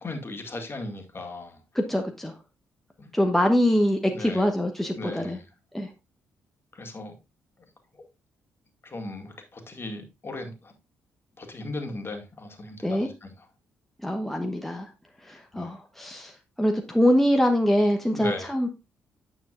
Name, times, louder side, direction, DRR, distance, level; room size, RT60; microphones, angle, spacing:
voice 1, 0.0-1.6 3.0-3.1 4.0-4.5 5.0-5.5 6.7-7.1 7.9-8.0 8.8-10.7 11.4-13.5 15.5-15.7 18.1-18.5, left 2 dB, 35° left, 2.1 m, -37 dB
voice 2, 1.7-2.3 3.1-5.4 5.7-5.9 12.8-13.1 14.0-14.9 15.3-16.3 16.6-18.7, equal, 5° left, 1.1 m, -24 dB
9.2 x 6.9 x 2.5 m
hypercardioid pair, 40°, 7 cm